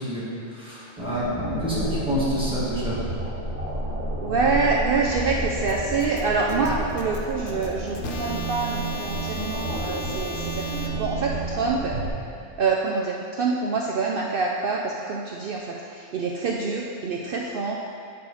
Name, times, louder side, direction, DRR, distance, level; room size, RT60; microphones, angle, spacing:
voice 1, 0.0-3.0, equal, 5° right, -9 dB, 1.9 m, -28 dB
sound 1, 1.0-12.1, right 1 dB, 35° right, 1.3 m, -31 dB
voice 2, 4.2-12.0 12.6-17.8, right 4 dB, 60° right, -2 dB, 0.7 m, -26 dB
sound 2, 5.7-10.9, left 2 dB, 55° left, 0.8 m, -37 dB
8.3 x 5.5 x 4.1 m, 2.4 s
omnidirectional pair, 1.2 m